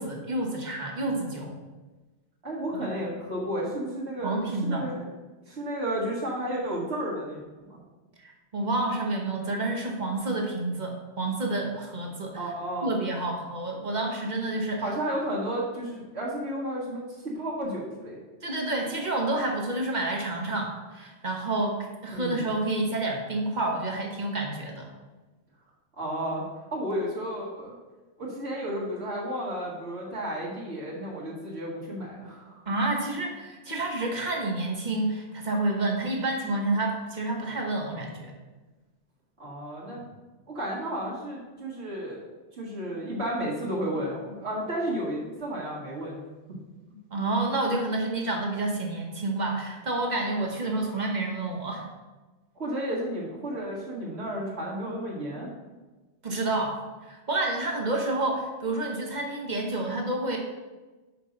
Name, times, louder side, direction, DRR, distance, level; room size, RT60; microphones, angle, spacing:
voice 1, 0.0-1.5 2.8-2.9 4.2-4.9 8.2-12.5 12.8-14.8 18.4-24.9 32.7-38.3 39.9-40.0 47.1-51.9 56.2-60.4, right 2 dB, 45° right, 1 dB, 1.2 m, -29 dB
voice 2, 2.4-5.1 5.5-7.8 12.3-12.9 14.8-18.2 22.1-22.5 26.0-26.4 26.7-27.7 28.2-32.6 39.4-40.0 40.5-42.2 42.5-46.2 46.5-46.6 46.9-47.0 52.6-55.5, right 1 dB, 70° right, -7 dB, 2.1 m, -32 dB
5.8 x 5.4 x 5.3 m, 1.2 s
omnidirectional pair, 1.1 m